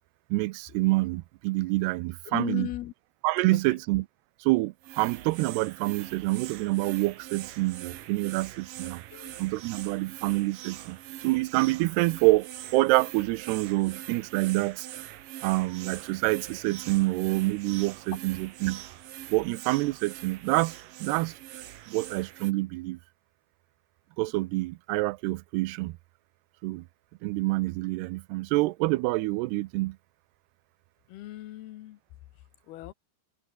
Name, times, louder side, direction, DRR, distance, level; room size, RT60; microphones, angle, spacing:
voice 1, 0.3-2.7 3.2-4.1 4.4-9.0 9.4-11.0 11.2-14.9 15.4-18.8 19.3-21.3 21.9-23.0 24.2-26.0 26.6-26.8 27.2-30.0, right 21 dB, 85° right, 2.7 m, -27 dB
voice 2, 2.3-2.9 3.5-3.6 9.1-9.4 31.1-32.0 32.7-32.9, left 15 dB, 75° left, 3.0 m, -37 dB
sound 1, 4.8-22.5, right 13 dB, 65° right, 2.6 m, -43 dB
omnidirectional pair, 4.7 m